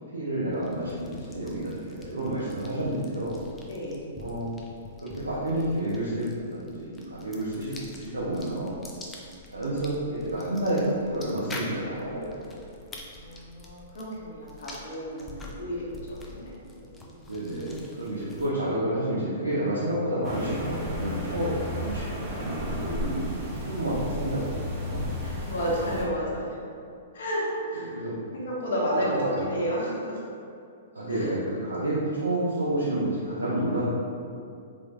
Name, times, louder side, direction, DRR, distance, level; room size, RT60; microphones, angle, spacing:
voice 1, 0.1-3.4 4.2-4.5 5.0-8.9 9.5-12.6 17.2-25.1 27.8-28.1 29.1-29.4 30.9-33.8, right 1 dB, 90° right, -9 dB, 0.6 m, -30 dB
sound 1, 0.5-18.7, left 2 dB, 15° left, 0.4 m, -46 dB
voice 2, 3.7-4.1 13.2-17.4 25.2-26.7 27.1-28.0 28.3-30.2 31.1-31.3, equal, 65° left, -5 dB, 0.8 m, -31 dB
sound 2, 20.2-26.1, left 1 dB, 25° right, 0.7 m, -33 dB
3.2 x 3.0 x 2.3 m, 2.4 s
hypercardioid pair, 115°, 0 cm